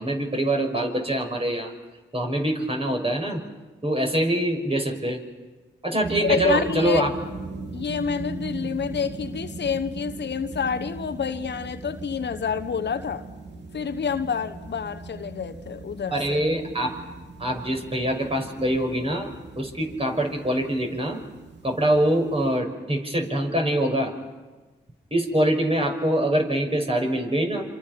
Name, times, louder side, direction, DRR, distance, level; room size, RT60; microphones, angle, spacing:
voice 1, 0.0-1.7 2.1-3.4 3.8-5.2 5.8-7.1 16.1-17.0 17.4-21.2 21.6-24.1 25.1-27.6, right 1 dB, 30° right, 3 dB, 5.9 m, -24 dB
sound 1, 6.0-22.6, right 3 dB, 65° right, 3.2 m, -39 dB
voice 2, 6.2-7.0 7.7-13.2 13.7-16.4, left 6 dB, 60° left, 10 dB, 1.1 m, -28 dB
27.0 x 26.5 x 5.8 m, 1.3 s
supercardioid pair, 40°, 20 cm